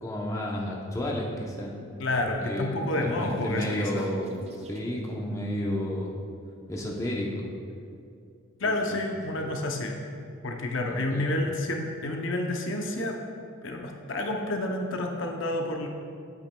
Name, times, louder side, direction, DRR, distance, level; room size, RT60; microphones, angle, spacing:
voice 1, 0.0-1.8 2.4-4.4 4.7-6.1 6.7-7.5 8.6-9.1 10.9-11.3, left 1 dB, 15° left, -3 dB, 0.7 m, -32 dB
sound 1, 0.9-6.2, right 2 dB, 30° right, 0.5 m, -47 dB
voice 2, 2.0-4.1 8.6-9.9 10.4-13.2 13.6-15.9, left 1 dB, 60° left, 2 dB, 0.6 m, -29 dB
8.9 x 8.1 x 2.2 m, 2.4 s
head